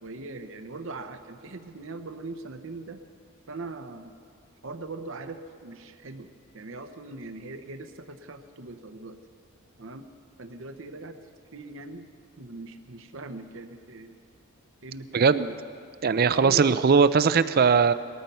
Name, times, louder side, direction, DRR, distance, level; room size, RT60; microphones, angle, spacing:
voice 1, 0.0-3.0 3.5-4.1 4.6-6.3 6.5-9.2 9.8-10.1 10.4-11.2 11.5-12.1 12.4-14.2 14.8-15.6 16.3-16.8, right 3 dB, 60° right, 8 dB, 0.8 m, -40 dB
voice 2, 15.1-15.5 16.0-17.9, right 5 dB, 45° right, 14 dB, 0.4 m, -20 dB
19.5 x 13.5 x 5.5 m, 2.2 s
head